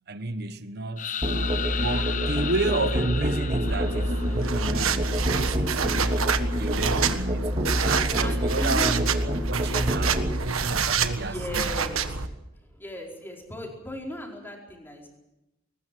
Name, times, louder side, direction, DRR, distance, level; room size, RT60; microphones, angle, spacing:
voice 1, 0.1-6.2 6.6-11.6, right 2 dB, 50° right, 1.2 m, -32 dB
sound 1, 1.0-4.8, left 8 dB, 40° left, 0.8 m, -34 dB
Musical instrument, 1.2-10.4, equal, 30° right, 2.3 m, -27 dB
sound 2, 3.7-12.3, right 6 dB, 85° right, 1.5 m, -28 dB
voice 2, 6.3-6.8 8.1-9.0 11.2-12.1 12.5-15.1, equal, 10° left, 4.8 m, -37 dB
21.5 x 19.5 x 7.7 m
head